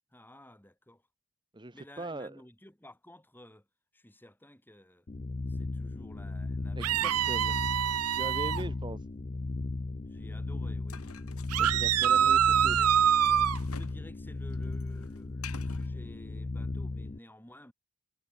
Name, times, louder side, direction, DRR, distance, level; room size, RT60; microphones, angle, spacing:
voice 1, 0.1-1.0 1.7-3.7 3.9-5.1 5.5-7.6 10.0-11.1 12.1-13.0 13.6-17.7, left 1 dB, 10° left, 3.6 m, -54 dB
voice 2, 1.5-2.4 6.7-7.5 8.1-9.0 11.6-12.8 13.4-13.6, right 2 dB, 20° right, 1.3 m, -41 dB
sound 1, 5.1-17.2, left 3 dB, 30° left, 0.5 m, -36 dB
sound 2, 6.8-8.6 11.5-13.6, right 9 dB, 80° right, 0.7 m, -25 dB
sound 3, 10.9-14.0 14.3-15.9, left 5 dB, 75° left, 5.8 m, -49 dB
head